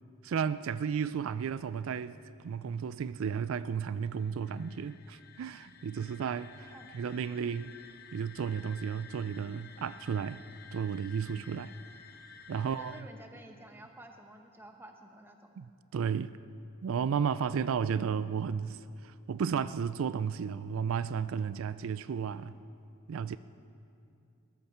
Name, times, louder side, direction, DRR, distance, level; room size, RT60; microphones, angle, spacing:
voice 1, 0.2-7.7 8.1-10.4 10.7-11.7 12.5-13.0 15.6-15.7 15.9-16.3 16.8-22.6 23.1-23.4, right 7 dB, 75° right, 0.4 m, -33 dB
sound 1, 3.9-13.0, left 5 dB, 45° left, 0.9 m, -53 dB
voice 2, 12.6-15.6, right 1 dB, 10° right, 1.0 m, -52 dB
20.5 x 13.5 x 4.5 m
head